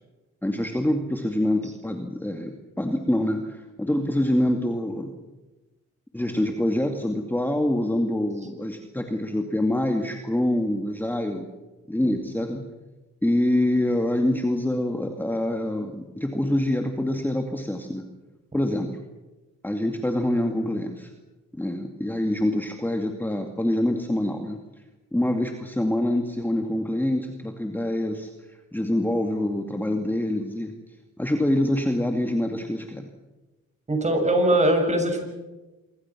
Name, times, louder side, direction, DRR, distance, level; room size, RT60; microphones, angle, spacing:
voice 1, 0.4-5.1 6.1-11.5 11.9-12.6 13.2-18.0 18.5-18.9 19.6-21.1 21.5-24.6 25.1-30.7 31.2-33.1, left 1 dB, 5° left, 4 dB, 2.3 m, -25 dB
voice 2, 33.9-35.2, right 1 dB, 25° right, 4 dB, 6.9 m, -21 dB
26.5 x 24.0 x 6.1 m, 1.1 s
cardioid pair, 90°, 30 cm